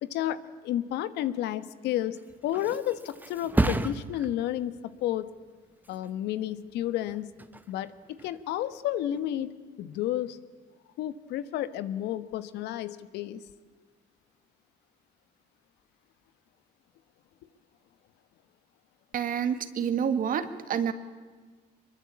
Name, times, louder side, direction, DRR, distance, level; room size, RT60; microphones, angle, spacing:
voice 1, 0.0-2.2 2.4-5.3 5.9-7.3 7.7-10.4 11.0-13.4, left 12 dB, 85° left, 13 dB, 1.3 m, -31 dB
Thump thud, 2.0-9.4 9.9-10.3, right 2 dB, 10° right, 1.2 m, -35 dB
voice 2, 19.1-20.9, right 8 dB, 55° right, 11 dB, 1.9 m, -28 dB
23.5 x 22.0 x 8.6 m, 1.4 s
cardioid pair, 110°, 17 cm